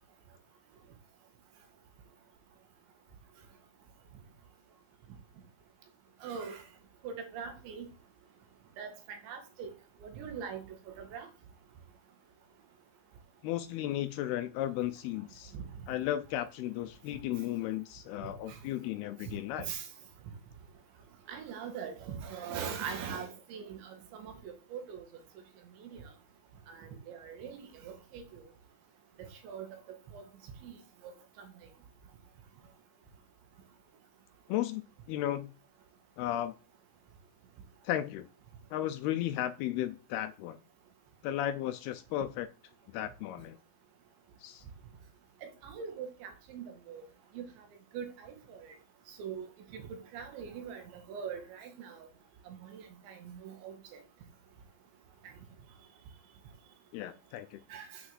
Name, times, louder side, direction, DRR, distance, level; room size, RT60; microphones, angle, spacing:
voice 1, 6.2-6.6 7.0-7.9 8.8-9.7 10.0-11.3 15.5-15.6 18.5-18.6 19.7-19.9 21.3-25.1 25.8-26.0 26.7-28.2 29.2-30.2 30.6-30.7 31.0-31.1 31.4-31.5 45.4-47.0 47.4-47.5 47.9-48.7 49.2-49.5 49.7-52.1 52.5-53.8 57.7-58.0, right 7 dB, 85° right, 4.2 m, -42 dB
voice 2, 13.4-15.5 15.9-19.7 34.5-34.8 35.1-35.5 36.2-36.5 37.8-38.3 38.7-40.6 41.2-42.5 42.9-43.6 44.4-44.6 56.9-57.6, left 13 dB, 80° left, 2.4 m, -34 dB
8.3 x 6.3 x 7.9 m
omnidirectional pair, 5.1 m